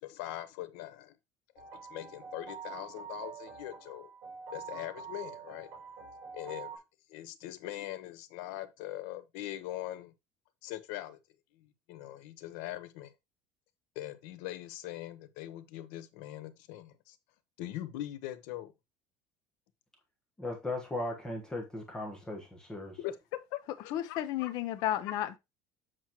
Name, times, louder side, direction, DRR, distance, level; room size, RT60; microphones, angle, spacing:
voice 1, 0.0-1.1 1.5-1.6 1.9-4.1 4.5-5.7 6.3-6.7 7.1-10.1 10.6-11.2 11.9-13.1 13.9-17.2 17.6-18.7 23.0-24.5, left 14 dB, 75° left, 0.9 m, -41 dB
sound 1, 1.6-6.8, right 6 dB, 45° right, 3.4 m, -46 dB
voice 2, 20.4-23.0, left 2 dB, 10° left, 1.2 m, -37 dB
voice 3, 23.9-25.4, left 12 dB, 50° left, 0.6 m, -32 dB
7.6 x 6.1 x 2.9 m
cardioid pair, 180°, 9 cm